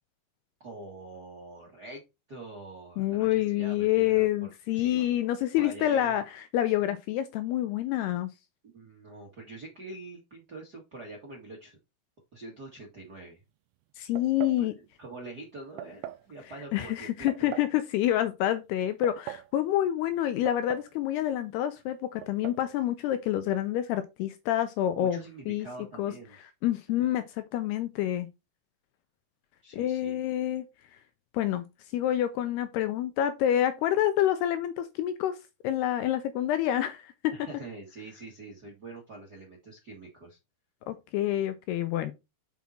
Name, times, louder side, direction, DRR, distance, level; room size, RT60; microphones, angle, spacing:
voice 1, 0.6-2.0 2.3-5.3 5.6-6.1 8.7-11.8 12.3-13.4 14.6-17.5 24.9-26.4 29.6-30.2 37.3-40.4, right 2 dB, 50° right, 1.1 m, -45 dB
voice 2, 3.0-8.3 14.0-14.7 16.7-25.2 25.5-25.7 26.0-26.1 26.6-28.3 29.7-30.7 31.3-31.7 31.9-35.4 35.6-37.3 40.9-42.1, left 12 dB, 80° left, 2.4 m, -27 dB
sound 1, 14.2-14.6 15.8-16.3 17.3-17.8 18.8-19.5 20.5-21.0 21.2-21.3 22.2-22.6, right 14 dB, 85° right, 2.7 m, -41 dB
7.2 x 5.5 x 4.4 m
omnidirectional pair, 5.2 m